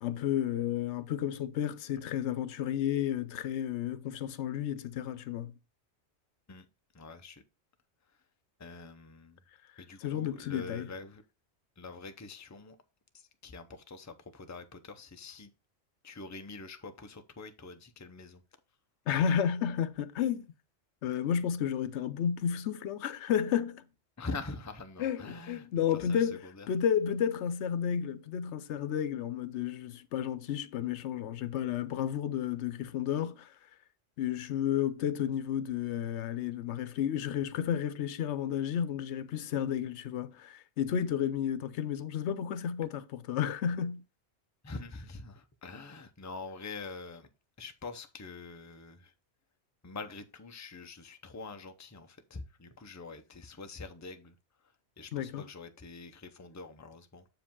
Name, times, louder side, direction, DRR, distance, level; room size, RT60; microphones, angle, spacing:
voice 1, 0.0-5.5 10.0-10.9 19.1-20.5 21.0-23.8 25.0-26.4 26.7-33.5 34.2-44.0 55.1-55.5, left 9 dB, 85° left, 0.9 m, -32 dB
voice 2, 6.9-7.4 8.6-9.4 9.8-11.2 11.8-12.8 13.1-15.5 16.0-18.4 24.2-26.7 44.6-47.3 47.6-49.1 49.8-54.4 54.6-57.3, left 3 dB, 20° left, 0.6 m, -45 dB
7.4 x 5.0 x 3.6 m
omnidirectional pair, 1.1 m